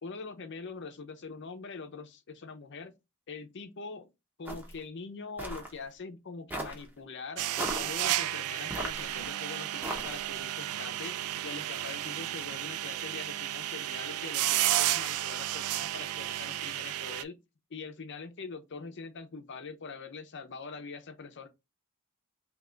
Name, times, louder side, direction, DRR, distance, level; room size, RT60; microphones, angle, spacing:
voice 1, 0.0-2.9 3.3-4.1 4.4-11.2 11.4-17.4 17.7-21.5, left 4 dB, 55° left, 0.6 m, -43 dB
sound 1, 4.5-4.8 5.4-5.7 6.5-6.9 7.6-7.9 8.7-9.3 9.8-10.3, right 1 dB, 10° right, 0.8 m, -37 dB
sound 2, 7.4-17.2, right 14 dB, 90° right, 0.3 m, -32 dB
3.3 x 2.9 x 3.7 m
head